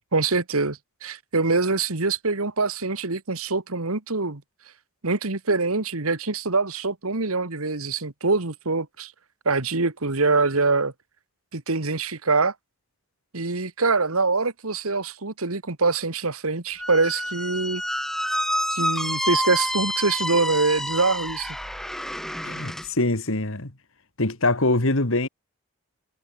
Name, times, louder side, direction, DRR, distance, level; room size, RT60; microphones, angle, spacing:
voice 1, 0.1-4.4 5.0-9.1 9.5-10.9 11.5-12.5 13.3-17.8 18.7-21.6, right 3 dB, 70° right, 1.8 m, -24 dB
Squeak, 16.8-22.9, equal, ahead, 1.1 m, -28 dB
voice 2, 22.4-23.7 24.2-25.3, left 2 dB, 60° left, 2.3 m, -23 dB
head